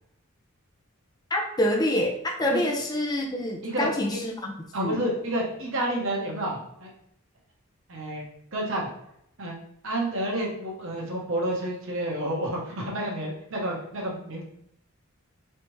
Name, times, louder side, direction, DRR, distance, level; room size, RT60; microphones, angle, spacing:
voice 1, 1.3-4.5 4.8-5.0, left 1 dB, 20° left, 1 dB, 0.5 m, -26 dB
voice 2, 3.6-4.2 4.7-6.9 7.9-8.3 8.5-8.9 9.4-9.6 9.8-14.4, right 1 dB, 60° right, -2 dB, 1.1 m, -30 dB
4.0 x 3.3 x 3.1 m, 0.74 s
head